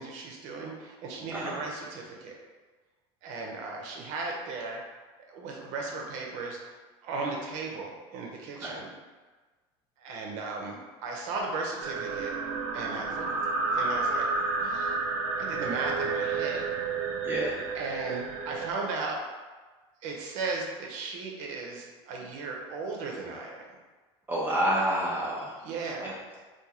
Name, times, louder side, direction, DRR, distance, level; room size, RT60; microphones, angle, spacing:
voice 1, 0.0-2.4 3.2-4.8 5.3-6.6 7.0-8.9 10.0-10.8 11.0-12.4 12.7-13.3 13.7-14.3 14.6-15.0 15.4-16.7 17.7-19.2 20.0-23.7 25.6-26.2, right 3 dB, 65° right, 0 dB, 0.8 m, -36 dB
sound 1, 11.8-18.7, right 4 dB, 90° right, 0.5 m, -31 dB
voice 2, 17.2-17.6 24.3-25.6 26.0-26.1, equal, 15° right, -6 dB, 0.6 m, -28 dB
2.9 x 2.5 x 3.7 m, 1.3 s
supercardioid pair, 125°, 14 cm